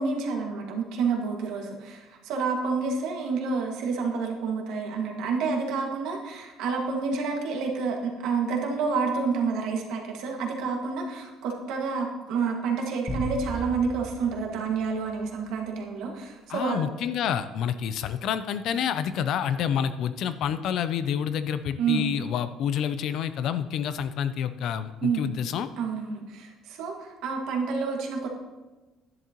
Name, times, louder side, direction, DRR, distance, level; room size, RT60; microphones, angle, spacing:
voice 1, 0.0-16.8 21.8-22.1 25.0-25.2 25.8-28.3, right 5 dB, 80° right, 1 dB, 1.8 m, -29 dB
sound 1, 13.1-15.6, right 1 dB, 5° left, 1.5 m, -36 dB
voice 2, 16.5-25.7, left 8 dB, 60° left, 12 dB, 0.5 m, -28 dB
11.0 x 10.5 x 3.0 m, 1.1 s
cardioid pair, 155°, 0 cm